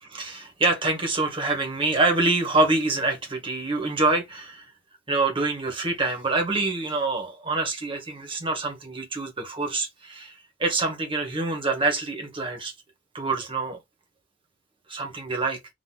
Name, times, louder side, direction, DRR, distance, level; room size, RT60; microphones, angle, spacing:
voice 1, 0.0-4.7 5.1-12.7 13.1-13.8 14.9-15.6, right 3 dB, 25° right, 1.4 m, -26 dB
4.0 x 2.8 x 4.1 m
head